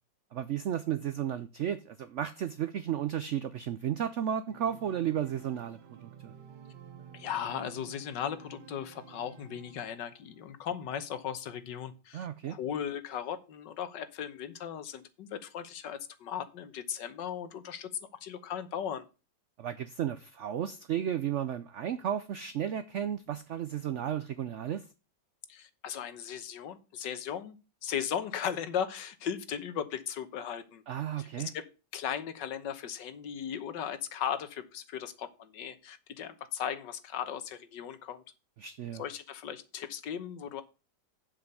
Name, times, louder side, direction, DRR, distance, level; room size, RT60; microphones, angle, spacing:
voice 1, 0.3-6.3 12.1-12.6 19.6-24.9 30.9-31.5 38.6-39.0, right 10 dB, 90° right, 0.6 m, -33 dB
Organ, 4.5-10.2, right 8 dB, 70° right, 1.6 m, -52 dB
voice 2, 7.1-17.9 18.2-19.0 25.5-27.6 27.8-30.8 31.2-31.6 31.9-38.2 39.0-40.6, left 8 dB, 80° left, 1.6 m, -37 dB
7.6 x 5.8 x 6.8 m
omnidirectional pair, 1.9 m